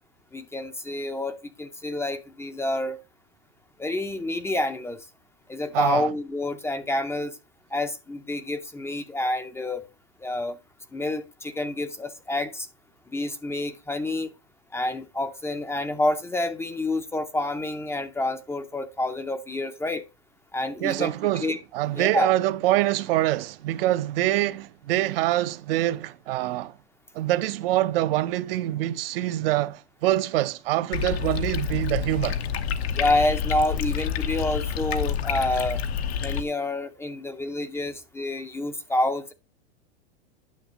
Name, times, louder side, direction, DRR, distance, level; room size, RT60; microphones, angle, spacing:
voice 1, 0.3-3.0 3.8-5.0 5.5-7.4 7.7-9.9 10.2-10.6 10.9-12.7 13.1-14.3 14.7-20.1 20.5-21.1 21.4-21.6 21.9-22.3 32.9-35.8 36.2-39.3, left 2 dB, 10° left, 0.5 m, -28 dB
voice 2, 5.7-6.1 20.8-26.7 27.1-32.4, right 15 dB, 60° right, 0.7 m, -25 dB
sound 1, 30.9-36.4, left 8 dB, 75° left, 1.1 m, -28 dB
9.4 x 6.3 x 2.9 m
hypercardioid pair, 125°, 32 cm